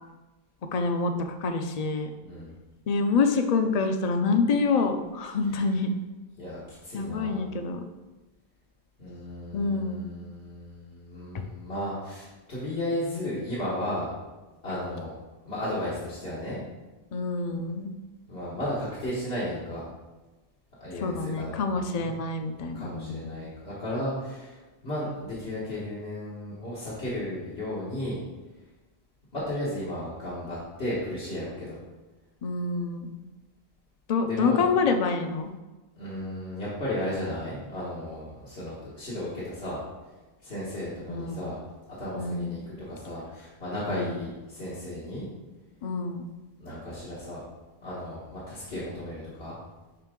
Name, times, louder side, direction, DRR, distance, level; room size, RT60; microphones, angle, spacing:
voice 1, 0.7-2.1 2.9-5.9 6.9-7.8 9.5-10.1 11.3-11.5 17.1-17.9 21.0-23.3 32.4-33.1 34.1-35.5 41.1-41.5 42.2-42.6 43.9-44.2 45.8-46.3, left 4 dB, 45° left, 6 dB, 0.6 m, -27 dB
voice 2, 2.2-2.5 6.4-7.5 9.0-14.1 14.6-15.1 15.4-16.6 18.3-19.9 20.8-22.1 22.6-24.6 24.8-28.2 29.3-31.8 34.3-34.6 36.0-39.8 40.4-41.6 42.0-45.3 46.6-47.4 47.8-49.6, left 1 dB, 80° left, -10 dB, 2.0 m, -34 dB
10.5 x 3.6 x 3.7 m, 1.2 s
omnidirectional pair, 1.0 m